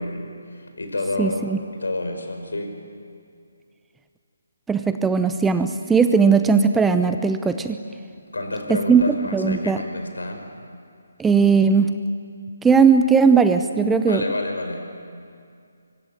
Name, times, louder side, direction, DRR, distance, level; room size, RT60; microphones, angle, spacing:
voice 1, 0.0-1.4 1.7-2.8 8.3-10.5 14.1-14.9, left 2 dB, 70° left, 5 dB, 5.2 m, -29 dB
voice 2, 1.2-1.6 4.7-7.8 8.7-9.8 11.2-11.9 12.6-14.2, right 5 dB, 5° right, 9 dB, 0.7 m, -18 dB
24.0 x 23.5 x 9.4 m, 2.4 s
figure-of-eight pair, 145°, 0 cm